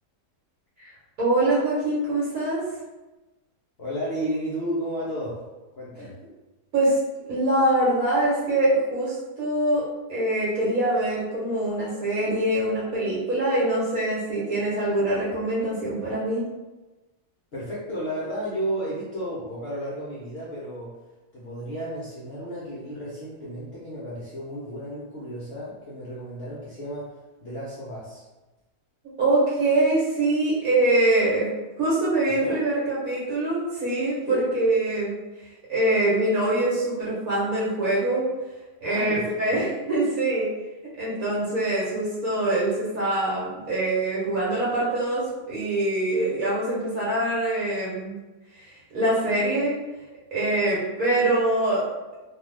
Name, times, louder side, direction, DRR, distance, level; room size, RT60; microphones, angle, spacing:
voice 1, 1.2-2.6 6.7-7.0 7.3-9.8 10.1-16.4 29.2-31.5 31.8-35.1 35.7-38.3 38.8-40.5 41.0-48.1 48.5-49.7 50.3-51.8, right 1 dB, 65° right, -7 dB, 1.2 m, -24 dB
voice 2, 3.8-5.4 5.8-6.1 17.5-20.9 21.3-28.3 32.3-32.6 34.3-34.5 38.8-39.6, equal, 60° left, -7 dB, 0.7 m, -33 dB
2.7 x 2.3 x 3.2 m, 1.1 s
omnidirectional pair, 1.7 m